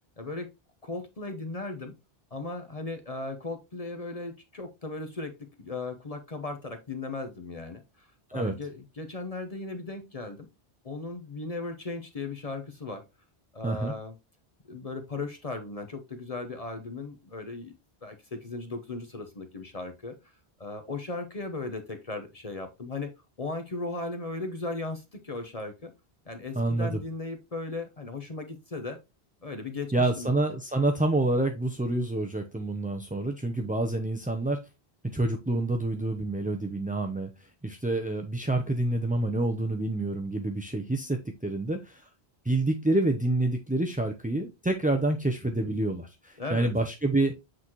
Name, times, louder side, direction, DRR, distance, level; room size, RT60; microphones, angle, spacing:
voice 1, 0.2-0.5 0.8-1.9 2.3-10.5 10.8-13.0 13.5-14.1 14.7-17.7 18.0-20.2 20.6-23.1 23.4-25.9 26.3-29.0 29.4-30.4 46.4-46.7, left 3 dB, 40° left, 0.9 m, -37 dB
voice 2, 13.6-13.9 26.6-27.0 29.9-34.6 35.1-37.3 37.6-42.1 42.4-47.3, right 2 dB, 10° right, 0.5 m, -27 dB
7.7 x 4.1 x 3.0 m
omnidirectional pair, 1.0 m